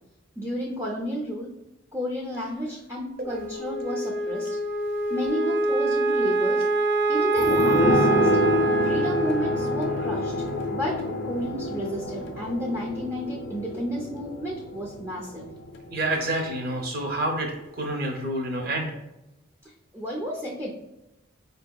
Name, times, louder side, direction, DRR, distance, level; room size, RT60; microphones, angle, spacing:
voice 1, 0.4-1.5 1.9-4.6 5.1-6.7 7.1-8.3 8.8-10.3 10.7-15.5 19.6-20.7, equal, 15° right, -4 dB, 0.4 m, -32 dB
Wind instrument woodwind instrument, 3.2-11.7, right 2 dB, 75° right, 1.2 m, -26 dB
sound 1, 7.4-16.6 16.9-17.0, left 1 dB, 55° left, 0.5 m, -28 dB
voice 2, 15.9-18.9, right 1 dB, 50° right, 2 dB, 0.7 m, -28 dB
4.5 x 2.7 x 2.2 m, 0.94 s
head